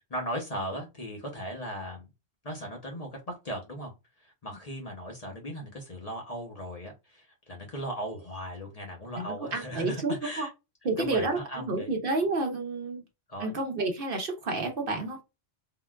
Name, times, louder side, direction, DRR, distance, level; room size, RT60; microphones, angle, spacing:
voice 1, 0.1-2.1 2.4-3.9 4.2-10.5 11.0-11.9 13.3-13.5, equal, 40° left, 0.7 m, -37 dB
voice 2, 9.2-10.5 10.8-13.0 13.4-15.2, right 3 dB, 55° right, 0.9 m, -30 dB
3.6 x 2.3 x 2.3 m
omnidirectional pair, 1.2 m